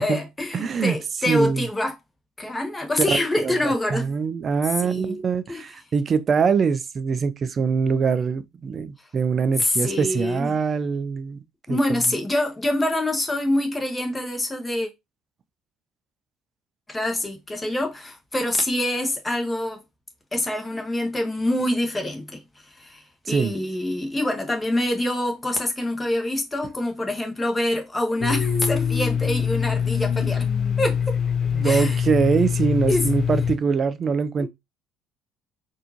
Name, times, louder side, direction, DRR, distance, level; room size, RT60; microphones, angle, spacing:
voice 1, 0.0-1.9 2.4-4.1 4.8-5.2 5.5-5.6 9.6-10.5 11.7-14.9 16.9-19.8 20.3-30.5 30.8-31.2 31.6-32.0 32.9-33.1 34.4-34.5, left 1 dB, 15° left, 1.3 m, -25 dB
voice 2, 0.5-1.0 1.3-1.7 3.0-11.4 11.7-11.8 23.3-23.5 31.5-34.5, right 5 dB, 40° right, 0.4 m, -23 dB
Domestic sounds home sounds, 28.2-33.6, left 7 dB, 45° left, 0.7 m, -24 dB
4.2 x 2.6 x 2.8 m
figure-of-eight pair, 55°, 0 cm